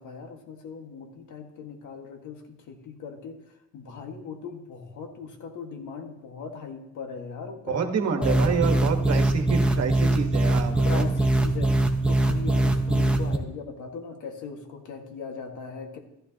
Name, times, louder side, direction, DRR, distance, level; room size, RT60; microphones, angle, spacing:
voice 1, 0.0-3.4 3.7-8.4 10.9-11.7 12.1-16.0, left 5 dB, 75° left, 3 dB, 1.8 m, -39 dB
voice 2, 7.7-11.1, right 6 dB, 55° right, 4 dB, 1.5 m, -28 dB
sound 1, 8.2-13.4, right 2 dB, 5° right, 1.1 m, -22 dB
13.5 x 11.0 x 2.9 m, 0.89 s
cardioid pair, 90°, 30 cm